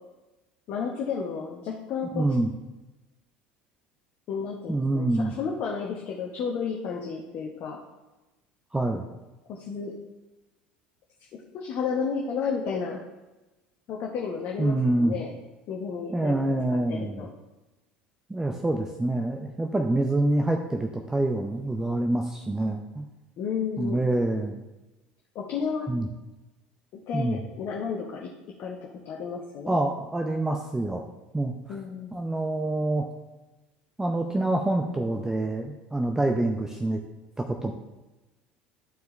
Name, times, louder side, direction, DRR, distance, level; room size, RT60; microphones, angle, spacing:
voice 1, 0.7-2.3 4.3-7.8 9.5-9.9 11.5-13.0 13.9-15.3 15.7-16.4 16.9-17.3 23.4-24.0 25.3-25.9 27.1-28.3 28.6-29.8 31.7-32.3, left 6 dB, 50° left, -1 dB, 0.9 m, -32 dB
voice 2, 2.1-2.5 4.7-5.3 8.7-9.0 14.6-15.2 16.1-17.3 18.3-23.1 23.8-24.6 25.9-26.1 27.1-27.4 29.7-31.0 31.3-31.8 32.1-33.1 34.0-37.0 37.4-37.7, right 2 dB, 10° right, 3 dB, 0.6 m, -26 dB
11.5 x 4.6 x 3.1 m, 1.1 s
figure-of-eight pair, 65°, 5 cm